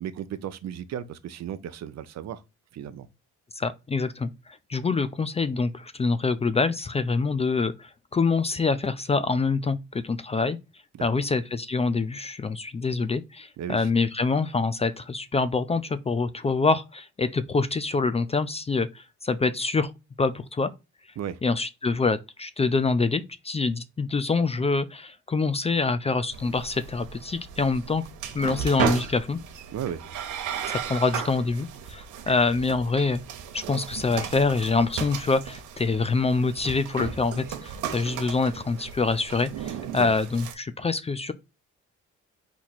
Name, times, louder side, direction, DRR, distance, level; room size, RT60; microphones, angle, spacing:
voice 1, 0.0-2.4 2.7-3.1 10.9-11.2 13.6-13.9 21.2-21.4 29.7-30.0 40.0-40.1, right 9 dB, 60° right, 0.6 m, -35 dB
voice 2, 3.6-10.6 11.0-19.9 20.2-20.7 21.4-28.0 28.3-29.4 30.7-33.2 33.5-41.3, left 4 dB, 20° left, 0.4 m, -25 dB
sound 1, 26.3-40.5, right 8 dB, 90° right, 0.9 m, -35 dB
4.4 x 2.9 x 4.1 m
cardioid pair, 90°, 30 cm